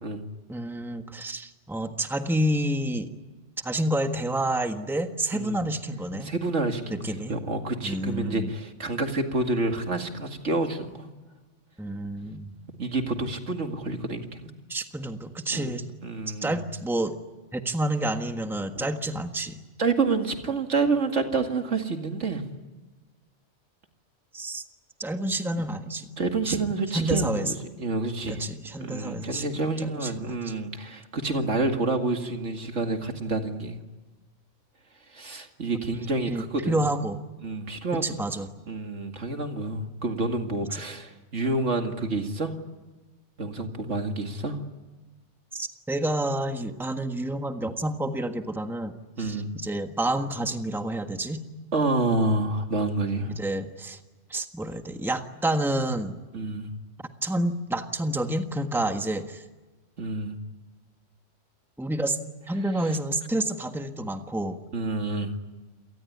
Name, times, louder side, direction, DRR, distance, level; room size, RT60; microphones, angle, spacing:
voice 1, 0.5-3.1 3.6-6.3 6.9-7.3 7.8-8.5 11.8-12.5 14.7-15.8 16.3-17.2 17.5-19.6 24.3-24.6 25.0-26.1 26.4-26.6 26.9-27.5 28.3-29.4 29.8-30.5 36.3-37.2 37.9-38.5 40.7-40.8 45.5-51.4 53.3-54.0 54.3-56.2 57.2-59.4 61.8-62.2 62.5-64.6, right 1 dB, ahead, 6 dB, 1.4 m, -29 dB
voice 2, 6.2-11.1 12.7-14.5 15.5-15.7 16.0-16.6 18.7-18.9 19.8-22.4 26.2-28.5 28.8-33.8 35.1-36.8 37.4-38.0 38.7-42.5 43.4-44.6 49.2-49.5 51.7-53.3 56.3-56.7 60.0-60.4 64.7-65.3, right 3 dB, 75° right, 5 dB, 2.5 m, -28 dB
28.0 x 19.0 x 9.6 m, 1.2 s
omnidirectional pair, 1.2 m